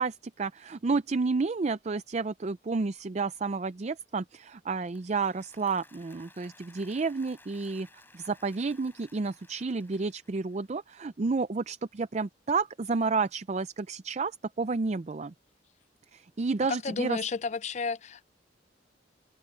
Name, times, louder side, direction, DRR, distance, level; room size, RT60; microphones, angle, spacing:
voice 1, 0.0-7.9 8.1-15.3 16.1-17.2, right 4 dB, 40° right, 0.5 m, -31 dB
Applause, 4.9-10.9, left 2 dB, 10° left, 4.7 m, -58 dB
voice 2, 16.7-18.2, left 5 dB, 40° left, 0.4 m, -32 dB
open air
head